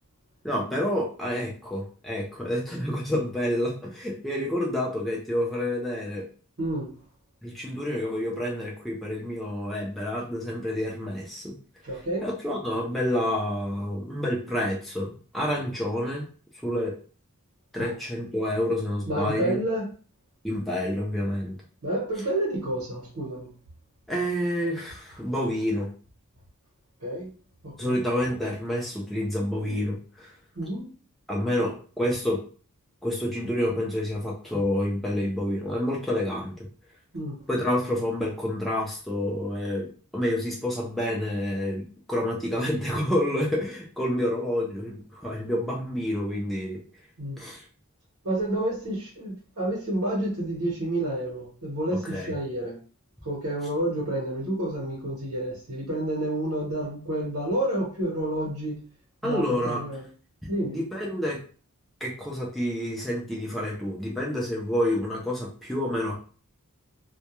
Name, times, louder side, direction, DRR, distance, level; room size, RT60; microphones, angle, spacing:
voice 1, 0.4-6.2 7.4-11.5 12.2-16.3 16.6-16.9 17.7-19.6 20.4-21.6 24.1-25.9 27.8-30.3 31.3-32.4 33.0-36.5 37.5-46.8 47.4-47.6 52.0-52.3 59.2-59.8 60.6-61.4 62.0-66.1, left 1 dB, ahead, -4 dB, 0.4 m, -28 dB
voice 2, 6.6-6.9 11.8-12.3 17.8-17.9 19.1-19.9 21.8-23.5 27.0-27.3 27.6-28.0 30.5-30.9 37.1-37.3 47.2-47.4 48.2-52.8 53.2-58.8 59.2-60.0 60.5-60.8, right 1 dB, 80° right, -3 dB, 0.9 m, -29 dB
2.2 x 2.1 x 2.9 m, 0.40 s
head